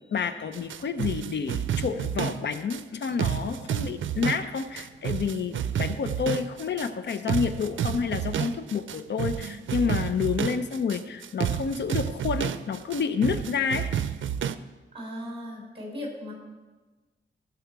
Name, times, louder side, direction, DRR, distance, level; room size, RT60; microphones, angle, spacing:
voice 1, 0.0-13.9, left 6 dB, 65° left, 10 dB, 0.6 m, -29 dB
sound 1, 0.5-14.6, right 9 dB, 85° right, 0.5 m, -30 dB
voice 2, 14.9-16.3, left 1 dB, 30° right, -2 dB, 4.4 m, -37 dB
16.5 x 7.0 x 4.7 m, 1.3 s
wide cardioid pair, 155°, 20 cm